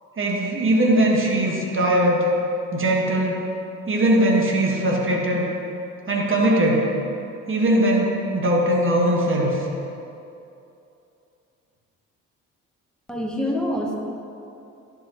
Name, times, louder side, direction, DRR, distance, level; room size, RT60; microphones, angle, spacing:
voice 1, 0.2-2.2 2.7-3.5 3.9-5.5 6.1-6.9 7.5-9.6, right 1 dB, 30° right, -2 dB, 1.7 m, -20 dB
voice 2, 13.1-14.0, left 1 dB, ahead, -1 dB, 1.2 m, -25 dB
11.0 x 5.1 x 3.1 m, 2.8 s
hypercardioid pair, 50°, 39 cm